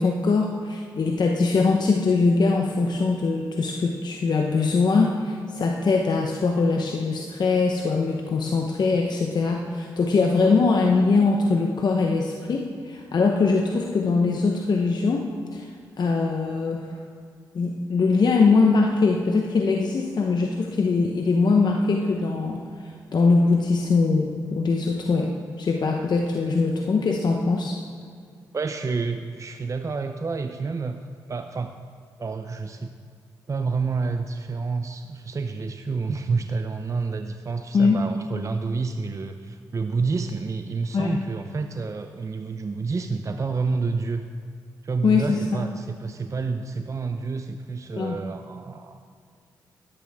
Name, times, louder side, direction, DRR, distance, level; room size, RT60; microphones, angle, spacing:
voice 1, 0.0-15.7 16.0-16.9 17.5-27.8 37.7-38.0 40.9-41.2 45.0-45.6 48.0-48.2, left 4 dB, 55° left, 1 dB, 0.9 m, -22 dB
voice 2, 28.5-31.0 31.3-31.8 32.2-32.9 33.5-44.2 44.8-49.0, right 4 dB, 40° right, 7 dB, 0.6 m, -29 dB
12.0 x 11.0 x 3.6 m, 2.1 s
supercardioid pair, 50°, 9 cm